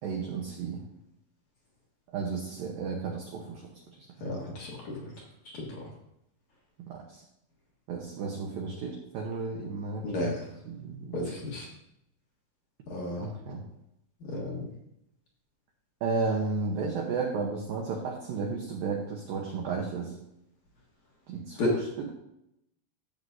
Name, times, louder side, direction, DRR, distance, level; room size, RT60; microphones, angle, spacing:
voice 1, 0.0-0.8 2.1-3.6 6.9-7.2 7.9-11.3 13.2-13.6 16.0-20.1 21.3-22.1, right 4 dB, 85° right, 0 dB, 2.0 m, -33 dB
voice 2, 4.2-4.7 5.6-5.7 10.0-10.3 11.1-11.7 12.9-13.3 14.3-14.5 21.6-21.7, left 1 dB, 60° left, -3 dB, 1.9 m, -32 dB
14.0 x 7.8 x 2.7 m, 0.82 s
omnidirectional pair, 5.7 m